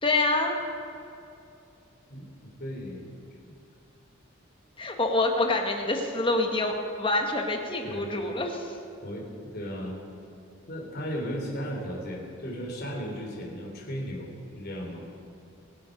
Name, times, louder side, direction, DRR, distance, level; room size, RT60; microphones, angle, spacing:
voice 1, 0.0-0.6 4.8-8.7, left 2 dB, 25° left, 3 dB, 1.4 m, -26 dB
voice 2, 2.1-3.1 3.5-3.6 7.8-8.1 9.0-10.0 10.7-15.0, equal, 50° left, -1 dB, 3.2 m, -36 dB
21.5 x 8.7 x 5.3 m, 2.6 s
head